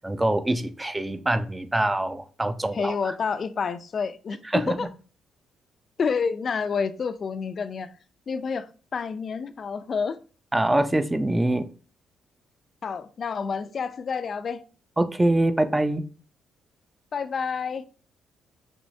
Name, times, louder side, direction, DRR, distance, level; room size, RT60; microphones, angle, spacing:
voice 1, 0.0-3.1 4.5-4.8 10.5-11.7 15.0-16.0, right 1 dB, 15° right, 0.5 m, -24 dB
voice 2, 2.7-4.9 6.0-8.0 8.3-10.2 12.8-14.6 17.1-17.9, left 5 dB, 45° left, 0.4 m, -29 dB
6.2 x 3.1 x 2.7 m
cardioid pair, 90°, 0 cm